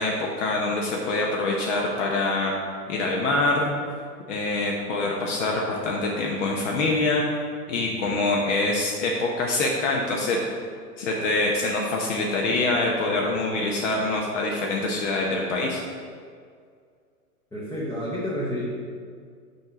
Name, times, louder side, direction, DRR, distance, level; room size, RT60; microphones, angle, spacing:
voice 1, 0.0-2.5 2.9-3.8 4.3-7.2 7.7-10.4 11.0-15.8, left 2 dB, 50° left, -1 dB, 0.9 m, -25 dB
voice 2, 17.5-18.6, equal, 5° left, -6 dB, 0.7 m, -29 dB
5.4 x 4.5 x 4.9 m, 2.1 s
figure-of-eight pair, 105°, 46 cm